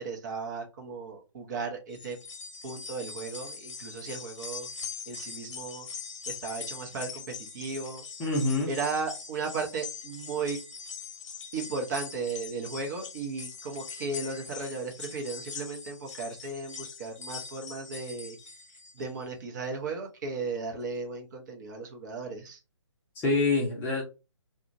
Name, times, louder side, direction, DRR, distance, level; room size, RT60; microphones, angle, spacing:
voice 1, 0.0-2.2 2.6-4.7 5.1-5.9 6.3-8.0 8.7-10.6 11.5-18.4 18.9-22.6, right 4 dB, 35° right, 1 dB, 0.8 m, -35 dB
sound 1, 1.9-19.2 19.6-19.7 20.8-20.9, left 5 dB, 65° left, 0.8 m, -42 dB
voice 2, 8.2-8.7 23.2-24.0, left 3 dB, 10° left, -2 dB, 0.7 m, -26 dB
2.8 x 2.4 x 2.6 m, 0.28 s
figure-of-eight pair, 145°, 16 cm